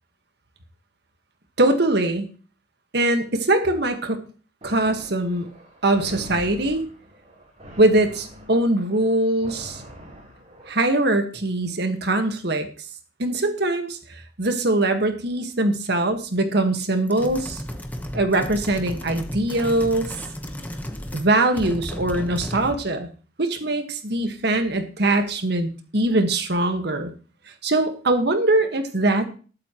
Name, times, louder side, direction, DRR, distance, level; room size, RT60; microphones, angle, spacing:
voice 1, 1.6-2.3 2.9-4.2 4.6-5.5 5.8-6.8 7.8-9.8 10.7-12.7 13.2-17.6 18.1-20.1 21.1-23.1 23.4-27.1 27.6-29.3, right 2 dB, 60° right, 6 dB, 1.7 m, -22 dB
sound 1, 4.6-11.0, equal, 40° right, 3.7 m, -43 dB
sound 2, 17.1-21.3 21.5-22.9, equal, 10° left, 1.2 m, -34 dB
20.0 x 8.5 x 3.1 m, 0.38 s
head